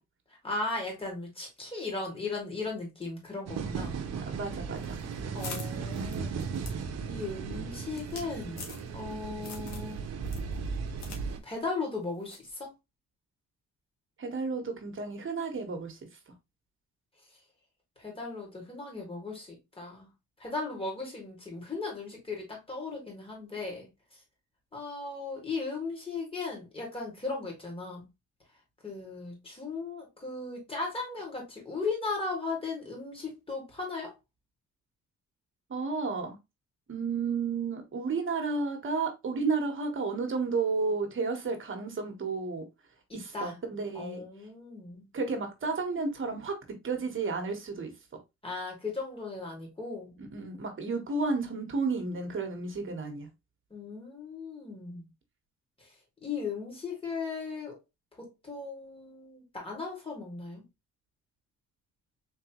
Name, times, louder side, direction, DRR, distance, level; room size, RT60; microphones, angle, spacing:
voice 1, 0.4-4.0 5.3-6.3 7.1-8.6 8.9-10.0 11.4-12.7 18.0-20.1 20.4-23.9 24.7-28.0 28.8-34.1 43.1-43.5 43.9-45.1 48.4-50.1 53.7-55.1 56.2-57.8 58.2-60.6, left 3 dB, 20° left, 2.4 m, -37 dB
sound 1, 3.5-11.4, right 5 dB, 60° right, 0.8 m, -36 dB
voice 2, 4.3-5.0 14.2-16.0 35.7-36.4 36.9-42.7 43.1-44.2 45.1-46.6 46.8-47.9 50.2-53.3, right 4 dB, 40° right, 1.4 m, -32 dB
sound 2, 4.8-9.1 9.4-9.9 10.2-11.2 11.5-11.6 12.3-12.5, left 4 dB, 65° left, 1.5 m, -45 dB
4.0 x 3.3 x 3.0 m
cardioid pair, 90°, 30 cm